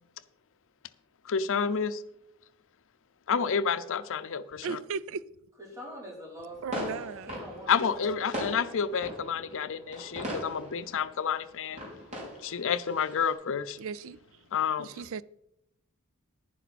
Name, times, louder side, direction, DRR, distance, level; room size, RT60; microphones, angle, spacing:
voice 1, 1.2-2.0 3.3-4.8 7.7-11.8 12.4-13.8 14.5-14.9, left 6 dB, 65° left, 0.6 m, -29 dB
voice 2, 4.6-5.2 6.6-7.4 13.8-14.2 14.8-15.2, right 5 dB, 65° right, 0.4 m, -36 dB
voice 3, 5.6-7.7 8.0-8.4, right 1 dB, 15° right, 3.7 m, -44 dB
sound 1, 6.5-13.3, equal, 35° right, 5.3 m, -40 dB
11.0 x 10.0 x 4.2 m
head